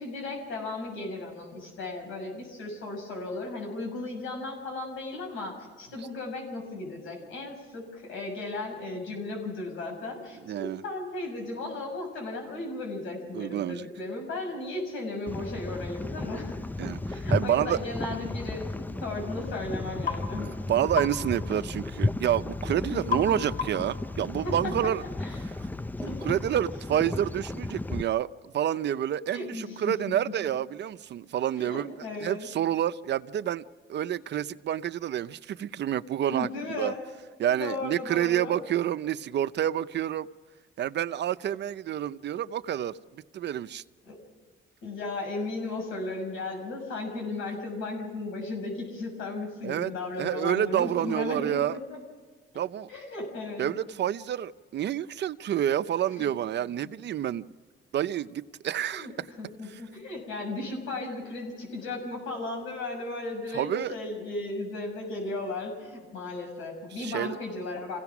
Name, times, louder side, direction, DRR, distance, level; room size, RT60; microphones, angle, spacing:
voice 1, 0.0-16.6 17.0-20.5 22.9-23.4 24.4-24.6 25.2-25.4 26.0-26.3 29.3-29.9 31.6-32.5 36.3-37.0 37.5-38.6 44.0-44.2 44.8-52.0 52.9-53.7 56.2-56.3 58.8-59.1 59.4-68.0, left 2 dB, 85° left, 6.8 m, -35 dB
voice 2, 10.5-10.8 13.3-13.9 16.8-17.8 20.7-25.0 26.2-28.3 28.5-31.9 32.2-33.6 33.9-36.5 36.7-36.9 37.4-40.3 40.8-42.9 43.3-43.8 49.6-49.9 50.2-51.8 52.5-52.9 53.6-57.4 57.9-59.3 63.5-63.9 67.0-67.4, right 10 dB, 60° right, 0.7 m, -28 dB
sound 1, 15.3-28.0, left 2 dB, 10° left, 0.5 m, -34 dB
sound 2, 20.1-20.2 21.0-21.2 23.1-23.3 23.6-23.9, left 6 dB, 45° left, 4.6 m, -30 dB
27.0 x 16.5 x 6.1 m
cardioid pair, 90°, 20 cm